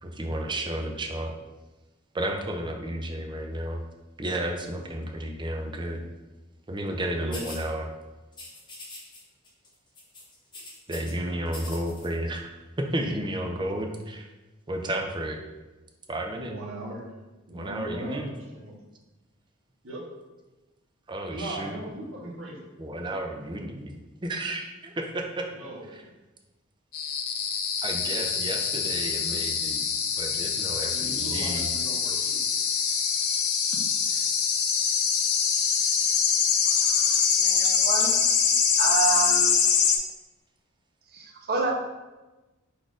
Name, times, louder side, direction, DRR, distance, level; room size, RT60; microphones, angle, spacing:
voice 1, 0.0-1.3 2.1-3.8 4.2-6.0 6.7-7.9 10.9-14.3 14.7-15.4 16.1-16.5 17.5-18.3 21.1-21.8 22.8-23.9 24.2-25.5 25.8-26.1 27.8-29.8 30.2-31.7 34.1-34.3, right 1 dB, 20° right, 3 dB, 0.5 m, -32 dB
sound 1, 7.3-7.6 8.3-9.2 9.4-9.7 9.9-11.1 11.5-12.1, left 2 dB, 20° left, 0.8 m, -42 dB
voice 2, 16.3-17.0 17.5-18.3 18.5-18.7 19.8-20.0 21.3-22.6 25.6-25.8 30.9-32.4, right 1 dB, 65° right, -3 dB, 1.2 m, -38 dB
sound 2, 26.9-40.0, left 6 dB, 85° left, 0.5 m, -24 dB
voice 3, 37.4-38.2 38.8-39.5 41.1-41.7, right 4 dB, 45° right, 0 dB, 0.8 m, -28 dB
4.0 x 2.6 x 4.8 m, 1.1 s
head